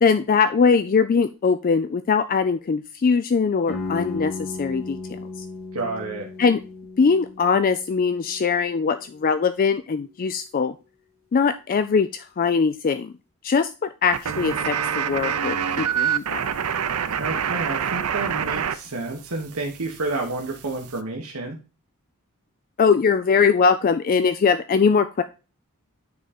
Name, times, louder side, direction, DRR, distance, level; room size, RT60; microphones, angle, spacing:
voice 1, 0.0-5.4 6.4-6.6 7.0-10.7 11.3-13.1 13.4-16.4 22.8-25.2, left 5 dB, 40° left, 11 dB, 0.4 m, -21 dB
sound 1, 3.7-9.4, left 3 dB, 65° left, 2.7 m, -36 dB
voice 2, 5.7-6.3 17.2-21.6, right 3 dB, 75° right, 0 dB, 1.3 m, -30 dB
sound 2, 14.1-18.8 19.0-21.0, right 8 dB, 90° right, 0.6 m, -27 dB
9.3 x 3.8 x 4.3 m, 0.31 s
head